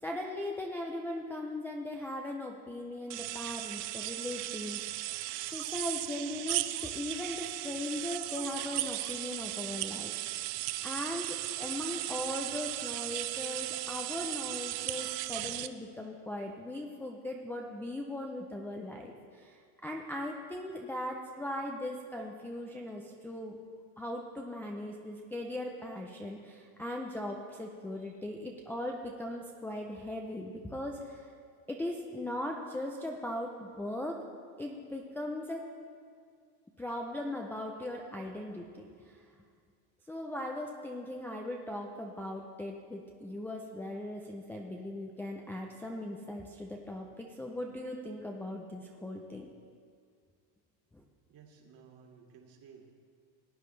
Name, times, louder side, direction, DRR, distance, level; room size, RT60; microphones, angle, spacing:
voice 1, 0.0-5.2 5.5-10.6 10.8-23.6 24.0-31.3 31.7-34.2 34.6-35.7 36.8-39.2 40.1-49.5 50.9-51.0, left 1 dB, 5° left, -1 dB, 0.4 m, -39 dB
sound 1, 3.1-15.7, right 16 dB, 80° right, 0.7 m, -36 dB
voice 2, 51.3-52.8, right 6 dB, 45° right, 0 dB, 2.1 m, -56 dB
18.0 x 8.9 x 3.3 m, 2.2 s
supercardioid pair, 130°, 48 cm